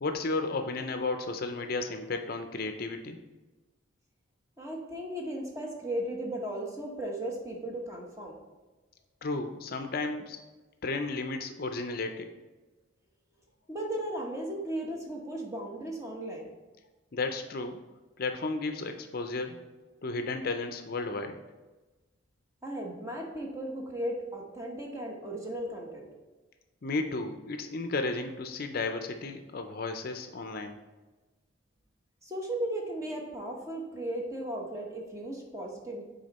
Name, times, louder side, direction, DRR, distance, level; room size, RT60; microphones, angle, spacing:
voice 1, 0.0-3.2 9.2-10.4 10.8-12.3 17.1-17.8 18.2-19.6 20.0-21.4 26.8-30.8, left 3 dB, 45° left, 6 dB, 0.5 m, -33 dB
voice 2, 4.6-8.4 13.7-16.5 22.6-26.1 32.2-36.0, right 1 dB, 15° right, 0 dB, 1.0 m, -36 dB
6.4 x 4.3 x 4.1 m, 1.2 s
head